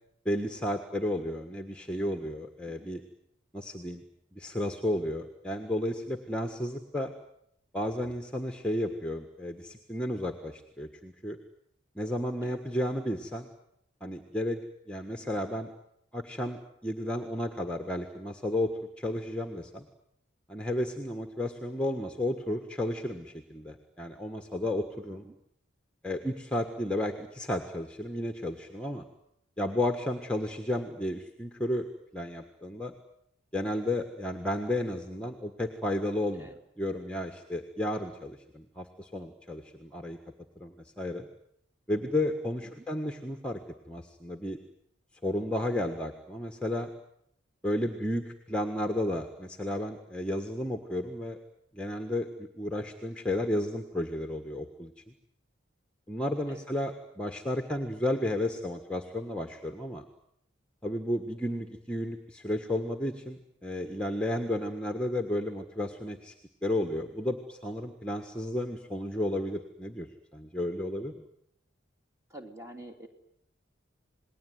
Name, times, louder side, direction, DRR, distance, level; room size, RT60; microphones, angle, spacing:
voice 1, 0.2-3.0 3.5-4.0 4.3-7.1 7.7-11.4 11.9-13.5 14.0-14.6 14.9-15.7 16.1-19.8 20.5-25.2 26.0-29.0 29.6-31.8 32.1-32.9 33.5-36.5 36.8-40.2 40.6-41.3 41.9-43.6 43.9-44.6 45.2-46.9 47.6-51.4 51.7-54.9 56.1-60.0 60.8-66.3 66.6-70.1 70.3-71.2, left 1 dB, 5° left, 5 dB, 1.5 m, -32 dB
voice 2, 72.3-73.1, right 1 dB, 15° right, 5 dB, 2.9 m, -48 dB
28.0 x 20.0 x 9.5 m, 0.76 s
head